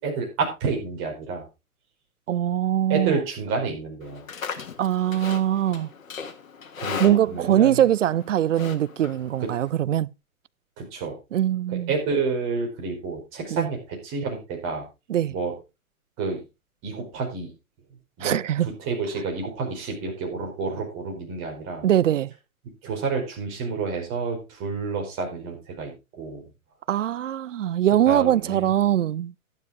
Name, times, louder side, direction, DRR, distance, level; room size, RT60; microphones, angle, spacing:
voice 1, 0.0-1.4 2.9-4.3 6.8-7.9 9.4-9.5 10.8-11.1 11.9-14.8 15.3-15.5 16.2-16.4 16.8-17.5 18.2-21.9 22.8-26.5 28.0-28.7, right 4 dB, 30° right, 4.7 m, -29 dB
voice 2, 2.3-3.2 4.8-5.9 7.0-10.1 11.3-11.9 13.5-13.7 15.1-15.3 18.2-18.7 21.8-22.3 26.9-29.3, right 11 dB, 60° right, 0.5 m, -22 dB
Livestock farm animals working animals, 4.0-9.7, left 6 dB, 65° left, 1.9 m, -38 dB
12.0 x 9.9 x 3.7 m
figure-of-eight pair, 125°, 43 cm